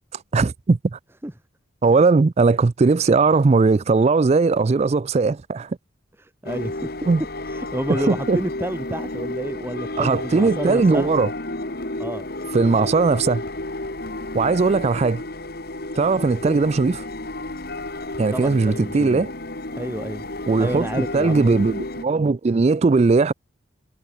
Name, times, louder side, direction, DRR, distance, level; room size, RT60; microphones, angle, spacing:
voice 1, 0.3-1.0 1.8-5.8 7.1-7.2 7.9-8.4 10.0-11.3 12.5-13.4 14.3-15.2 16.0-17.1 18.2-19.3 20.5-20.9 21.1-23.3, right 4 dB, 35° right, 0.4 m, -19 dB
voice 2, 6.2-6.9 7.5-11.1 12.0-12.2 18.3-19.2 19.8-20.3 20.6-21.7, right 1 dB, 10° right, 0.8 m, -29 dB
sound 1, 6.5-22.1, left 2 dB, 50° left, 2.4 m, -31 dB
head